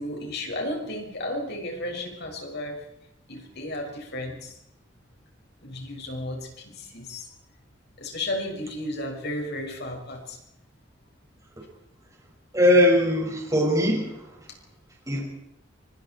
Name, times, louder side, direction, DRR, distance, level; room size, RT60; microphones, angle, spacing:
voice 1, 0.0-2.8 3.3-4.6 5.6-7.3 8.0-10.4, left 1 dB, 60° left, 2 dB, 6.3 m, -33 dB
voice 2, 12.5-14.3 15.1-15.3, left 1 dB, 20° right, -1 dB, 6.2 m, -21 dB
26.0 x 24.5 x 4.6 m, 0.80 s
head